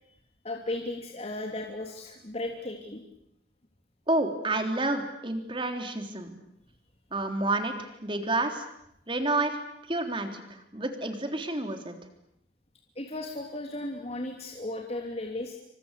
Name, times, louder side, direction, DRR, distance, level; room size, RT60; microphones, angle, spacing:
voice 1, 0.4-3.0 12.9-15.5, left 2 dB, 35° left, 1 dB, 3.0 m, -35 dB
voice 2, 4.1-6.3 7.1-8.7 9.1-9.6 9.9-11.9, right 2 dB, 25° right, 6 dB, 3.6 m, -29 dB
28.0 x 25.0 x 8.3 m, 0.77 s
head